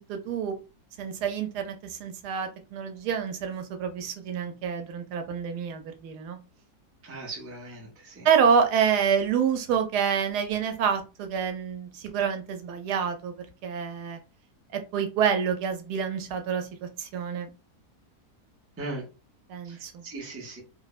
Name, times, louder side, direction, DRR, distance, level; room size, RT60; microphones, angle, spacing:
voice 1, 0.1-0.6 1.0-6.4 8.2-14.2 14.7-17.5 19.5-20.0, right 7 dB, 85° right, 7 dB, 1.1 m, -27 dB
voice 2, 7.0-8.3 18.8-19.1 19.6-20.6, right 2 dB, 20° right, -2 dB, 0.3 m, -39 dB
3.1 x 2.0 x 2.3 m, 0.31 s
omnidirectional pair, 1.7 m